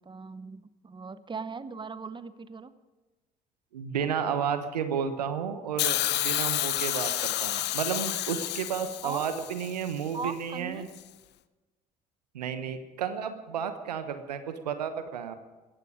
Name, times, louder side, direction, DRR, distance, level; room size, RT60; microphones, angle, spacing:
voice 1, 0.0-2.7 4.0-4.1 9.0-9.3 10.1-10.9, right 4 dB, 25° right, 14 dB, 1.0 m, -39 dB
voice 2, 3.7-10.9 12.3-15.3, right 7 dB, 90° right, 10 dB, 1.0 m, -32 dB
Hiss, 5.8-9.9 10.9-11.0, left 14 dB, 60° left, 0.8 m, -30 dB
18.0 x 15.0 x 5.1 m, 1.2 s
hypercardioid pair, 55°, 20 cm